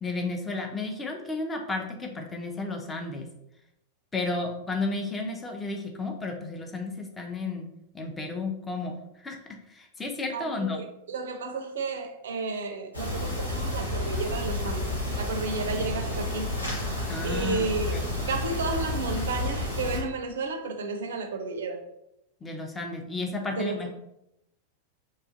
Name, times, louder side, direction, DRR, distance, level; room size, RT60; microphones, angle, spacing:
voice 1, 0.0-3.3 4.1-7.7 7.9-8.9 9.2-9.4 9.7-10.8 17.1-18.1 22.4-23.9, left 3 dB, 15° left, 0.5 m, -32 dB
voice 2, 10.3-16.5 17.2-21.8 23.5-23.9, right 3 dB, 65° right, 0.4 m, -32 dB
sound 1, 12.9-20.0, left 1 dB, 85° left, 1.0 m, -30 dB
2.8 x 2.4 x 2.5 m
figure-of-eight pair, 90°, 0 cm